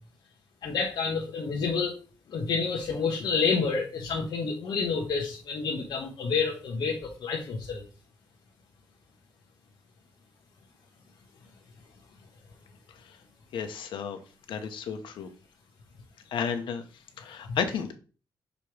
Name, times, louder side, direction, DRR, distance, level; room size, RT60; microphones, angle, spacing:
voice 1, 0.6-1.9 2.3-7.8 17.5-17.6, left 5 dB, 65° left, -2 dB, 1.2 m, -29 dB
voice 2, 13.5-14.2 14.5-15.3 16.3-16.8 17.3-17.9, left 7 dB, 85° left, 7 dB, 0.9 m, -32 dB
6.7 x 3.0 x 4.8 m, 0.37 s
wide cardioid pair, 150°, 8 cm